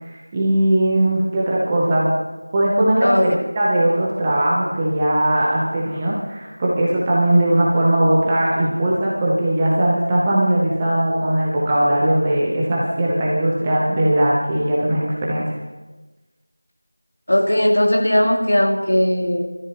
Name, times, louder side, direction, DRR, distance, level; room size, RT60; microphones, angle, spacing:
voice 1, 0.1-2.1 2.5-15.5, right 1 dB, 5° right, -5 dB, 0.7 m, -19 dB
voice 2, 17.3-19.4, left 1 dB, 50° left, 0 dB, 2.2 m, -17 dB
25.0 x 13.0 x 2.9 m, 1.2 s
figure-of-eight pair, 180°, 0 cm